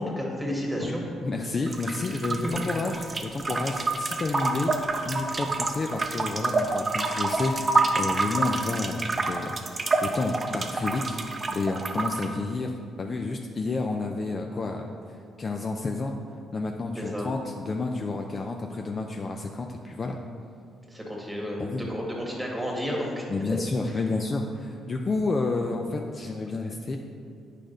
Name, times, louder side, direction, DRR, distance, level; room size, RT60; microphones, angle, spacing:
voice 1, 0.0-1.1 2.4-2.5 17.0-17.3 20.9-23.2, equal, 5° right, -2 dB, 1.7 m, -31 dB
voice 2, 1.2-4.7 5.0-15.0 15.4-16.2 16.5-20.2 21.6-21.8 23.3-27.0, left 3 dB, 35° left, 3 dB, 0.4 m, -30 dB
sound 1, 1.7-12.3, right 3 dB, 30° right, 0.6 m, -28 dB
8.4 x 5.0 x 3.8 m, 2.4 s
cardioid pair, 90°, 0 cm